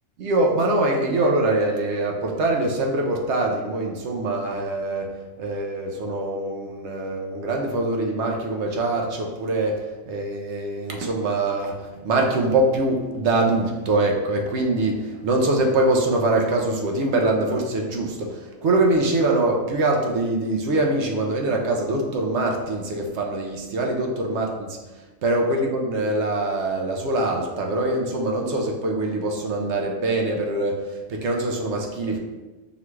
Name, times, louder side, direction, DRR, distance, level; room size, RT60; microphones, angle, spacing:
voice 1, 0.2-5.1 5.4-24.8 25.2-32.2, right 2 dB, 65° right, 1 dB, 0.9 m, -23 dB
5.8 x 2.3 x 3.1 m, 1.2 s
omnidirectional pair, 1.4 m